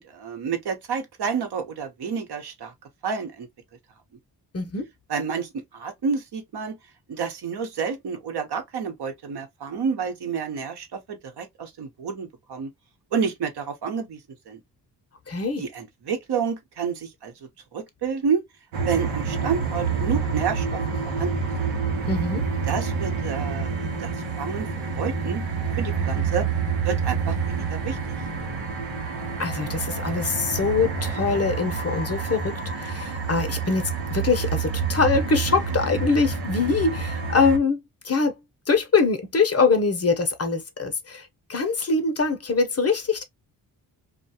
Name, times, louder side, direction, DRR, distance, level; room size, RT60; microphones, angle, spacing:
voice 1, 0.0-2.7 3.0-3.5 5.1-6.8 7.1-12.7 13.1-14.2 14.5-14.6 15.6-17.3 17.7-18.4 18.8-21.3 21.6-21.8 22.7-24.1 24.4-25.5 25.8-26.5 26.8-28.0, right 6 dB, 60° right, 1.0 m, -29 dB
voice 2, 4.5-4.9 15.3-15.6 22.1-22.5 29.4-38.4 38.7-43.2, left 4 dB, 35° left, 0.7 m, -23 dB
sound 1, 18.7-37.6, right 5 dB, 85° right, 0.8 m, -28 dB
2.3 x 2.3 x 2.7 m
supercardioid pair, 45°, 43 cm